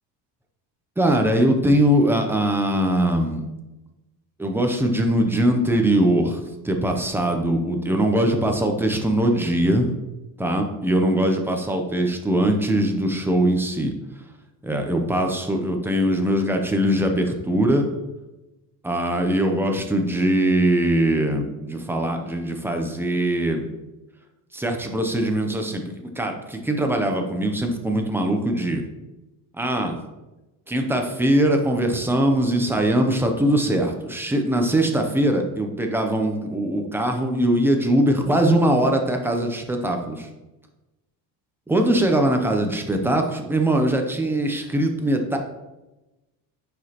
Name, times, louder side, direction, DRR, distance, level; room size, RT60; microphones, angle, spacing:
voice 1, 1.0-3.4 4.4-9.9 10.4-13.9 14.6-17.9 18.8-23.7 24.5-28.8 29.6-30.0 30.7-40.3 41.7-45.4, right 1 dB, 5° right, 3 dB, 0.5 m, -21 dB
9.5 x 5.1 x 2.9 m, 1.0 s
cardioid pair, 170°, 44 cm